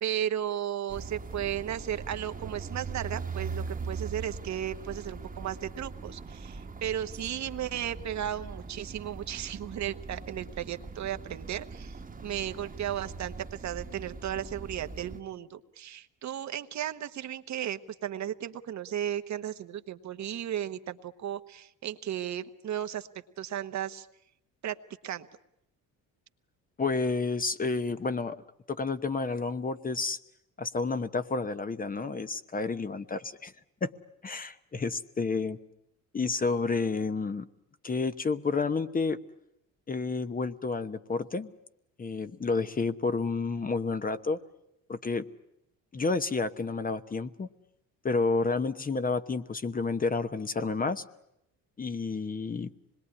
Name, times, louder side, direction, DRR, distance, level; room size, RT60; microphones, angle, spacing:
voice 1, 0.0-23.1 23.4-24.1 24.6-24.8 25.0-25.3, right 10 dB, 55° right, 10 dB, 1.2 m, -35 dB
sound 1, 0.9-15.2, right 4 dB, 25° right, 1.4 m, -41 dB
voice 2, 26.8-30.2 30.6-33.5 33.8-33.9 34.2-35.6 36.1-37.5 37.8-39.2 39.9-41.5 42.0-44.4 44.9-45.3 45.9-47.5 48.0-51.0 51.8-52.7, left 4 dB, 25° left, 11 dB, 1.0 m, -30 dB
25.5 x 21.0 x 9.8 m, 0.82 s
cardioid pair, 95°, 34 cm